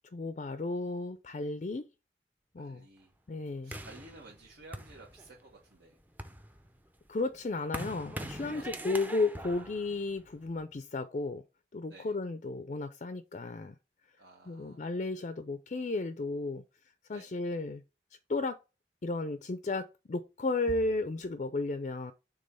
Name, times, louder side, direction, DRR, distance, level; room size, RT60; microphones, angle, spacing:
voice 1, 0.1-1.9 2.5-2.8 3.3-3.8 7.1-11.4 11.7-13.7 14.5-16.6 17.1-17.8 18.3-18.6 19.0-22.1, left 3 dB, 40° left, 0.4 m, -34 dB
voice 2, 2.6-3.1 3.6-6.0 8.5-9.0 11.9-12.1 14.2-14.8 17.1-17.3, right 2 dB, 75° right, 1.3 m, -54 dB
sound 1, 3.7-5.5 6.0-10.6, right 1 dB, 10° right, 0.5 m, -43 dB
5.3 x 3.6 x 5.5 m
head